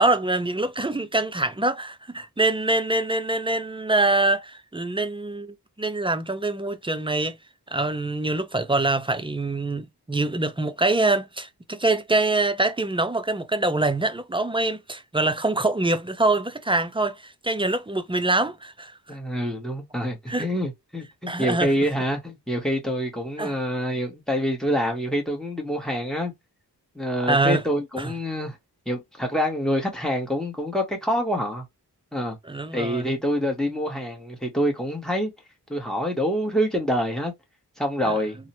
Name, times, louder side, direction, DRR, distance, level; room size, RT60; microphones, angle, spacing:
voice 1, 0.0-7.4 7.7-18.9 20.3-20.5 21.3-21.7 23.4-23.5 27.3-27.6 28.0-28.1 32.5-33.1 38.0-38.2, right 2 dB, 15° right, 0.3 m, -24 dB
voice 2, 19.1-26.3 26.9-28.6 28.9-31.6 32.1-32.4 32.7-35.3 35.7-37.3 37.8-38.4, equal, ahead, 0.9 m, -26 dB
2.7 x 2.1 x 2.6 m
wide cardioid pair, 60°, 40 cm